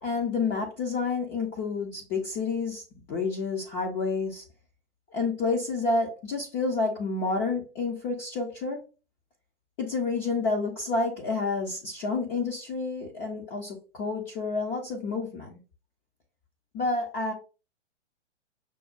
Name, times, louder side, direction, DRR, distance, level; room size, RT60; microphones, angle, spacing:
voice 1, 0.0-2.8 3.1-4.4 5.1-8.8 9.8-15.6 16.7-17.3, left 3 dB, 20° left, 0.4 m, -29 dB
6.2 x 2.1 x 2.4 m
figure-of-eight pair, 120°, 35 cm